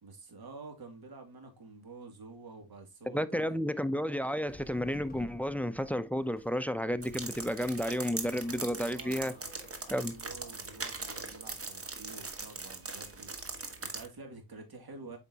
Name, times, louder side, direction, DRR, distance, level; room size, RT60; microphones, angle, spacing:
voice 1, 0.0-3.6 8.3-9.5 9.8-13.3 13.8-15.2, right 3 dB, 60° right, 2.5 m, -49 dB
voice 2, 3.1-9.3 9.9-10.1, equal, 5° left, 0.5 m, -32 dB
sound 1, 4.5-10.0, left 2 dB, 20° left, 1.2 m, -54 dB
sound 2, 7.0-14.1, right 3 dB, 35° right, 1.5 m, -41 dB
8.0 x 5.2 x 2.8 m
cardioid pair, 90°, 41 cm